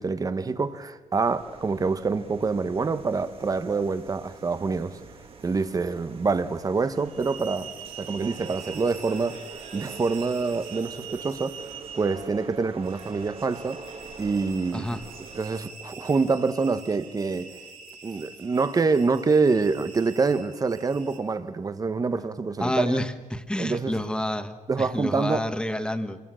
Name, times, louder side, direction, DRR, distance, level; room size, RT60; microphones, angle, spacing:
voice 1, 0.0-5.0 5.4-7.7 8.0-9.4 9.7-11.5 12.0-13.8 14.2-15.0 15.3-17.6 18.0-23.0 23.6-23.9 24.7-25.4, right 4 dB, 25° right, 1.1 m, -26 dB
sound 1, 1.2-15.6, right 5 dB, 40° right, 2.0 m, -45 dB
sound 2, 6.9-21.2, right 6 dB, 85° right, 4.0 m, -44 dB
voice 2, 14.7-15.0 22.6-26.2, left 1 dB, 5° left, 1.2 m, -29 dB
27.0 x 22.0 x 6.3 m
cardioid pair, 135°, 14 cm